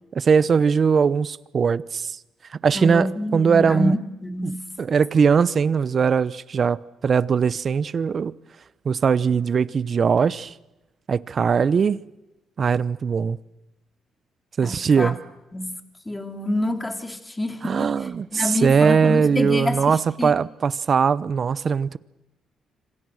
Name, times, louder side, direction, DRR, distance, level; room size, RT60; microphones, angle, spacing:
voice 1, 0.2-2.2 2.6-4.0 4.4-8.3 8.8-10.5 11.1-12.0 12.6-13.4 14.6-15.2 17.6-22.0, right 6 dB, 45° right, 0.8 m, -20 dB
voice 2, 2.7-4.6 14.6-15.1 15.5-15.7 16.1-17.9 18.3-20.3, left 1 dB, 15° left, 2.9 m, -27 dB
26.5 x 26.0 x 6.4 m
cardioid pair, 90°, 0 cm